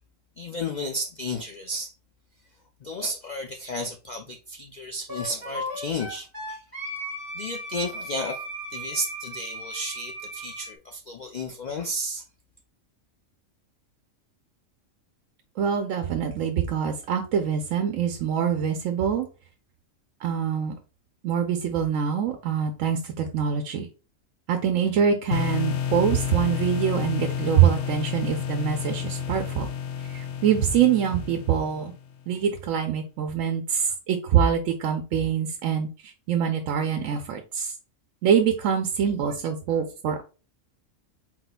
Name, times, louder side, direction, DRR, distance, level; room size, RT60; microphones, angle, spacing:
voice 1, 0.4-1.9 2.8-6.6 7.3-8.4 8.7-12.2, left 1 dB, 80° left, 0.4 m, -33 dB
Wind instrument woodwind instrument, 5.1-10.7, equal, 15° right, 1.7 m, -36 dB
voice 2, 15.6-19.3 20.2-20.7 21.2-23.9 24.5-29.7 30.1-31.9 32.3-35.9 36.3-37.7 38.2-40.2, right 8 dB, 75° right, 1.0 m, -24 dB
sound 1, 25.3-32.1, left 8 dB, 65° left, 0.8 m, -30 dB
4.2 x 4.1 x 2.2 m
omnidirectional pair, 1.4 m